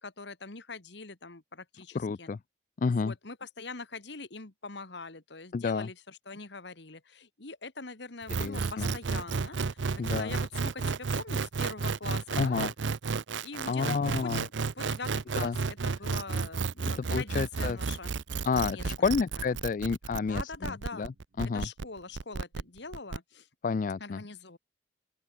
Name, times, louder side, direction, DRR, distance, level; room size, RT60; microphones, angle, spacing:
voice 1, 0.0-2.3 3.0-10.5 10.7-12.6 13.4-14.5 14.8-18.1 18.7-18.8 20.2-21.1 21.5-23.5 24.0-24.6, left 3 dB, 65° left, 1.8 m, -43 dB
voice 2, 1.9-2.4 2.8-3.1 5.5-5.9 8.3-8.9 10.0-10.3 12.4-12.7 13.6-14.5 15.3-15.6 17.0-17.8 18.4-21.7 23.6-24.2, left 5 dB, 45° left, 0.3 m, -30 dB
sound 1, 8.3-23.2, right 4 dB, 75° right, 0.6 m, -32 dB
open air
head